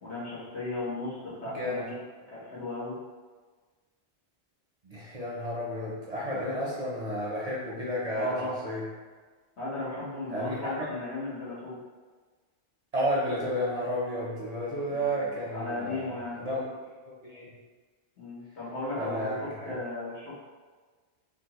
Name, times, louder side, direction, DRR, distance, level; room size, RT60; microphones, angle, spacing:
voice 1, 0.0-2.0 2.3-2.9 8.1-8.5 9.6-11.8 14.9-16.4 18.2-20.3, left 2 dB, 75° left, -9 dB, 1.5 m, -36 dB
voice 2, 1.4-1.8 4.8-8.9 10.3-10.9 12.9-16.7 17.0-17.5 19.0-19.7, equal, 45° right, -6 dB, 0.6 m, -32 dB
3.6 x 2.5 x 2.9 m, 1.4 s
omnidirectional pair, 1.1 m